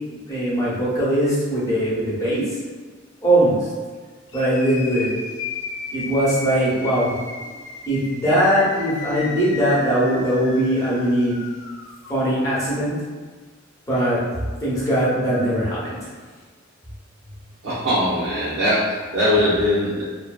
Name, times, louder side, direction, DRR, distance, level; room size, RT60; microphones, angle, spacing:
voice 1, 0.1-2.5 3.2-3.7 4.3-5.1 5.9-7.5 7.9-11.4 12.1-13.0 13.9-14.2 14.6-16.0, right 1 dB, 15° left, -8 dB, 0.7 m, -20 dB
sound 1, 4.3-12.2, left 4 dB, 65° left, 0.3 m, -35 dB
voice 2, 17.6-20.0, left 1 dB, 70° right, -10 dB, 0.6 m, -21 dB
2.5 x 2.2 x 2.2 m, 1.5 s
head